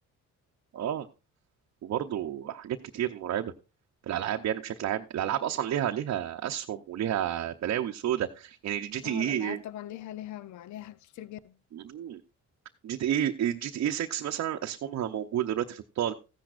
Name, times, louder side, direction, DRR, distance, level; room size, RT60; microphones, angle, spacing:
voice 1, 0.7-1.1 1.8-3.5 4.1-9.6 11.7-12.2 12.8-16.1, right 10 dB, 60° right, 0.7 m, -30 dB
voice 2, 9.0-11.6, left 12 dB, 70° left, 0.6 m, -41 dB
14.5 x 10.5 x 2.5 m
cardioid pair, 90°, 30 cm